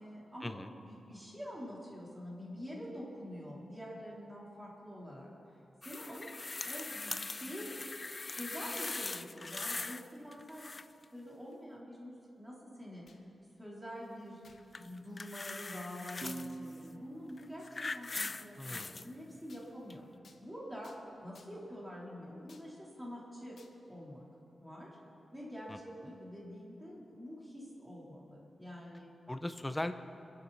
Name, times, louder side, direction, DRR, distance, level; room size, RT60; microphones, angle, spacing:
voice 1, 0.0-5.3 5.8-6.3 6.6-7.7 8.2-10.6 11.1-13.1 13.6-14.4 14.8-20.0 20.4-20.9 21.2-23.6 23.9-24.2 24.6-25.0 25.3-29.1, equal, 10° right, -5 dB, 3.5 m, -46 dB
sound 1, 5.8-10.1 10.3-11.0 14.7-16.5 17.3-19.1 19.9-20.0, left 3 dB, 30° left, 0.4 m, -41 dB
sound 2, 13.0-13.3 14.4-14.7 15.3-15.4 16.5-16.7 18.1-18.3 19.5-19.7 20.2-20.4 20.8-21.0 21.3-21.7 22.5-22.7 23.6-23.7, left 4 dB, 70° left, 1.4 m, -62 dB
sound 3, 16.2-19.6, right 3 dB, 40° right, 0.5 m, -49 dB
voice 2, 18.6-19.0 25.7-26.1 29.3-29.9, left 1 dB, 10° left, 8 dB, 0.7 m, -39 dB
27.0 x 11.0 x 4.1 m, 2.8 s
wide cardioid pair, 140°, 0 cm